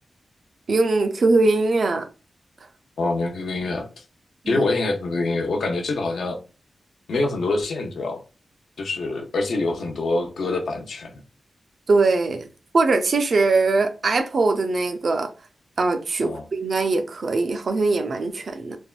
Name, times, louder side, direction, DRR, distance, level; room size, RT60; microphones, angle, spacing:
voice 1, 0.7-2.0 4.4-4.7 11.9-12.5 12.7-15.3 15.8-18.8, right 3 dB, 55° right, 0.4 m, -21 dB
voice 2, 3.0-3.9 4.5-6.4 7.1-8.2 8.8-11.2 16.2-16.5, left 2 dB, 80° left, 0.6 m, -25 dB
3.4 x 2.1 x 2.3 m
wide cardioid pair, 130°, 0 cm